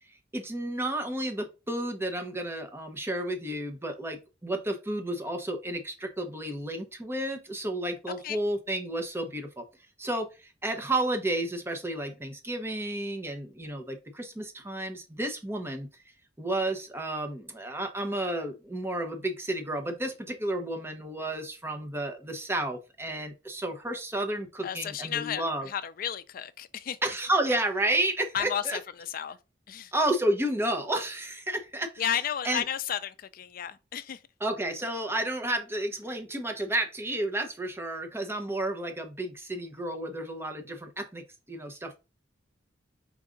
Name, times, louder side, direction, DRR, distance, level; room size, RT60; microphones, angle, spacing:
voice 1, 0.3-9.6 10.0-15.9 16.4-25.7 27.0-28.8 29.9-31.9 32.4-32.6 34.4-41.2 41.5-42.0, right 1 dB, 15° right, 0.8 m, -31 dB
voice 2, 24.6-27.0 28.3-29.4 29.7-29.9 32.0-34.2, left 9 dB, 50° left, 0.4 m, -33 dB
4.7 x 2.5 x 3.7 m
head